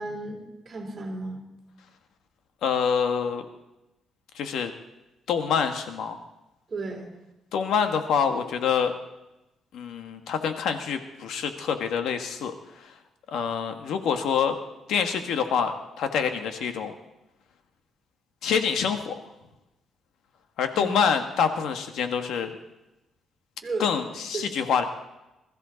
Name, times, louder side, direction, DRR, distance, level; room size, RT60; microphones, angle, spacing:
voice 1, 0.0-1.4 6.7-7.1 20.7-21.0 23.6-24.1 24.3-24.6, right 2 dB, 25° right, -1 dB, 3.6 m, -34 dB
voice 2, 2.6-3.4 4.3-4.7 5.3-6.2 7.5-8.9 9.7-12.9 13.3-14.6 14.9-16.9 18.4-19.1 20.6-22.5 23.8-24.8, left 7 dB, 75° left, 7 dB, 1.5 m, -26 dB
21.5 x 14.0 x 4.1 m, 0.97 s
cardioid pair, 170°, 0 cm